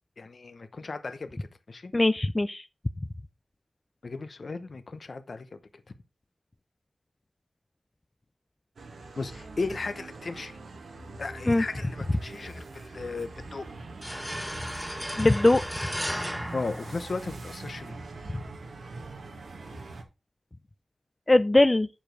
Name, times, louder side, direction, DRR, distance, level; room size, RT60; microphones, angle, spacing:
voice 1, 0.2-1.9 4.0-5.6 9.2-10.6 11.2-13.7 16.5-18.0, left 3 dB, 60° left, 0.9 m, -36 dB
voice 2, 1.9-2.6 11.5-11.6 15.2-15.9 21.3-21.9, left 2 dB, 30° left, 0.4 m, -21 dB
sound 1, 8.8-20.0, right 2 dB, 90° right, 1.6 m, -43 dB
sound 2, 14.0-17.6, equal, ahead, 1.0 m, -35 dB
7.2 x 5.0 x 6.0 m
cardioid pair, 55°, 0 cm